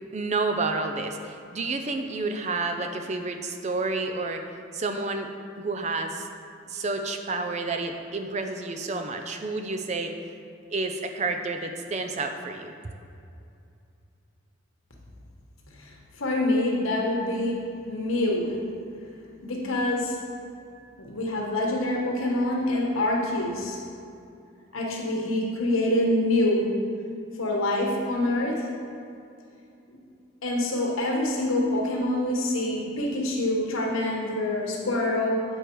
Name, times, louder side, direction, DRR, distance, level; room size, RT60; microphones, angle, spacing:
voice 1, 0.1-4.5 4.7-5.3 5.6-6.3 6.7-10.1 10.7-12.7, right 3 dB, 35° right, 5 dB, 0.4 m, -30 dB
voice 2, 15.6-17.6 17.9-18.5 19.4-20.2 21.0-23.8 24.7-26.7 27.4-28.7 30.4-35.4, left 1 dB, 85° left, -1 dB, 1.3 m, -26 dB
8.1 x 4.5 x 4.5 m, 2.5 s
head